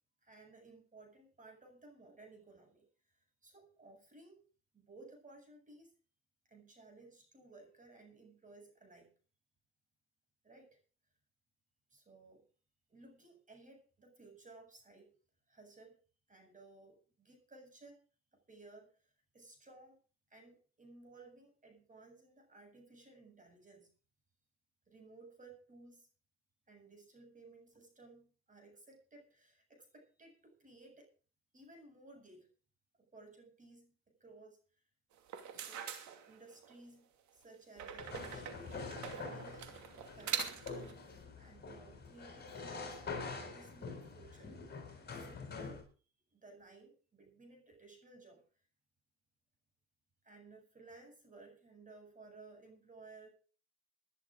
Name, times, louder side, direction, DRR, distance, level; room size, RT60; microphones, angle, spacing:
voice 1, 0.2-2.9 3.4-4.4 4.7-5.9 6.5-9.1 10.4-10.8 11.9-12.4 12.9-15.1 15.5-16.0 16.3-18.0 18.5-19.0 19.3-20.0 20.3-23.9 24.9-26.1 26.7-31.1 31.5-32.5 33.0-34.6 35.5-35.9 36.3-38.8 39.3-39.8 40.1-41.0 41.4-43.0 43.4-44.6 45.1-45.8 46.3-48.4 50.2-53.3, right 3 dB, 25° right, 4 dB, 7.9 m, -58 dB
sound 1, 35.2-36.8 37.8-40.9, right 8 dB, 75° right, 2.7 m, -43 dB
sound 2, 38.0-45.8, left 4 dB, 35° left, 6.9 m, -46 dB
21.5 x 11.0 x 3.9 m, 0.38 s
cardioid pair, 95°, 29 cm